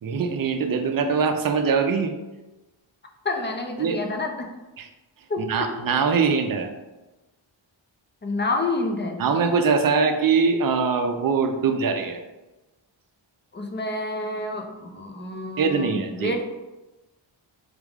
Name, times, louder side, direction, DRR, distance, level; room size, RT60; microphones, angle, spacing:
voice 1, 0.0-2.1 3.8-4.0 4.8-4.9 5.4-6.7 9.2-12.2 15.6-16.4, right 5 dB, 45° right, 6 dB, 0.5 m, -22 dB
voice 2, 3.2-4.5 5.3-5.4 8.2-9.2 13.5-16.4, left 2 dB, 25° left, 3 dB, 0.6 m, -28 dB
3.6 x 3.4 x 3.5 m, 1.1 s
wide cardioid pair, 90°, 48 cm